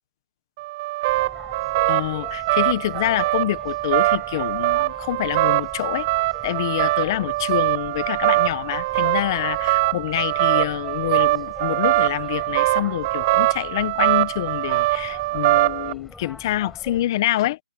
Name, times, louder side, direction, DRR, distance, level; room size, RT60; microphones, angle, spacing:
sound 1, 0.6-15.9, right 19 dB, 20° right, 0.6 m, -22 dB
sound 2, 1.1-17.0, left 2 dB, ahead, 6.8 m, -43 dB
voice 1, 1.9-6.1 6.4-17.6, left 15 dB, 25° left, 1.2 m, -26 dB
hypercardioid pair, 160°, 5 cm